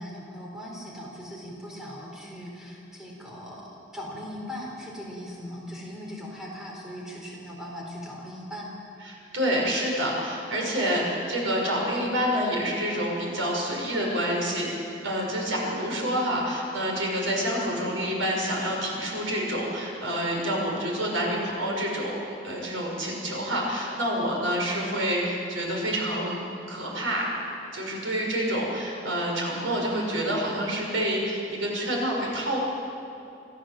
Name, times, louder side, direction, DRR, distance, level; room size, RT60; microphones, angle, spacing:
voice 1, 0.0-8.7 29.5-30.0, equal, 5° right, -3 dB, 4.4 m, -39 dB
voice 2, 9.0-14.7 15.0-27.3 27.7-32.6, equal, 90° right, -1 dB, 6.2 m, -28 dB
25.0 x 15.5 x 7.8 m, 2.7 s
head